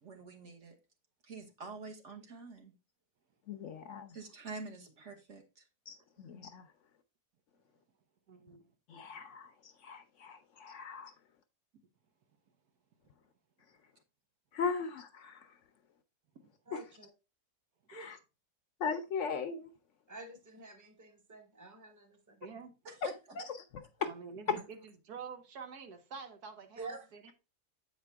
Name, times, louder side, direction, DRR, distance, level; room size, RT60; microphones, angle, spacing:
voice 1, 0.0-0.7 1.2-2.7 4.1-5.6 22.8-23.1, right 3 dB, 50° right, 1.5 m, -47 dB
voice 2, 3.5-4.2 5.9-6.7 8.9-11.1 14.5-15.5 16.7-16.8 17.9-18.2 18.8-19.7 23.4-23.6 24.0-24.1 24.5-24.6, left 5 dB, 65° left, 0.8 m, -38 dB
voice 3, 8.3-8.7 9.2-9.3 16.3-16.5 22.4-22.7 24.0-27.3, right 5 dB, 85° right, 1.5 m, -48 dB
voice 4, 16.7-17.1 17.9-18.1 20.1-22.4 23.3-23.5 24.0-24.1 24.6-24.7 26.8-27.1, right 3 dB, 15° right, 0.9 m, -48 dB
8.0 x 5.1 x 3.4 m
omnidirectional pair, 1.6 m